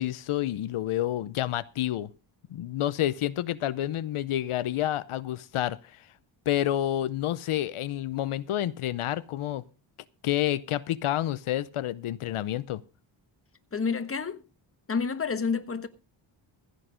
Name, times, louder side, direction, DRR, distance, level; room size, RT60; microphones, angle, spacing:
voice 1, 0.0-2.1 2.5-5.8 6.5-9.6 10.2-12.8, left 13 dB, 85° left, 0.7 m, -29 dB
voice 2, 13.7-14.4 14.9-15.9, left 5 dB, 25° left, 1.2 m, -29 dB
15.5 x 8.3 x 5.1 m
wide cardioid pair, 115°, 50 cm